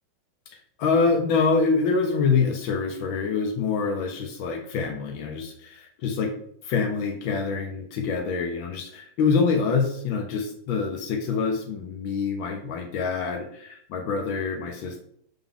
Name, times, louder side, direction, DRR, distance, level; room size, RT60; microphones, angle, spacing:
voice 1, 0.8-6.3 6.6-15.0, left 5 dB, 85° left, 2 dB, 1.6 m, -25 dB
7.0 x 3.7 x 3.7 m, 0.65 s
omnidirectional pair, 2.1 m